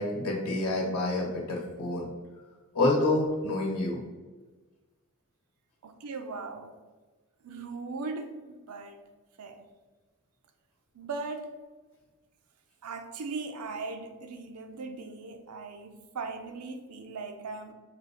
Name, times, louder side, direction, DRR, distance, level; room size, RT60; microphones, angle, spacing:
voice 1, 0.0-2.1 2.7-4.0, left 2 dB, 70° left, -2 dB, 0.9 m, -28 dB
voice 2, 5.8-6.8 7.4-9.0 9.4-9.7 10.9-11.5 12.8-17.7, right 4 dB, 85° right, 6 dB, 0.5 m, -39 dB
5.6 x 2.4 x 3.7 m, 1.3 s
head